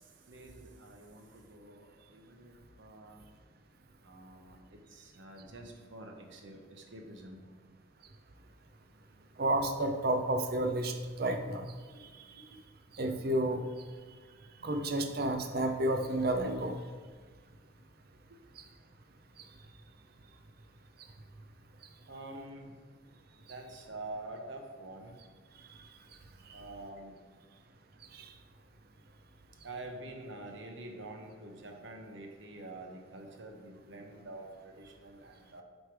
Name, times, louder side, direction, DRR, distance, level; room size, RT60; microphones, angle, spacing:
voice 1, 0.8-2.5 2.8-3.2 4.0-7.4 22.1-22.7 23.5-25.2 26.5-27.1 29.6-35.6, right 2 dB, 65° right, 3 dB, 0.9 m, -47 dB
voice 2, 9.4-11.7 13.0-13.6 14.6-16.7 28.1-28.3, right 1 dB, 50° right, 6 dB, 0.6 m, -31 dB
8.0 x 3.3 x 4.7 m, 1.5 s
head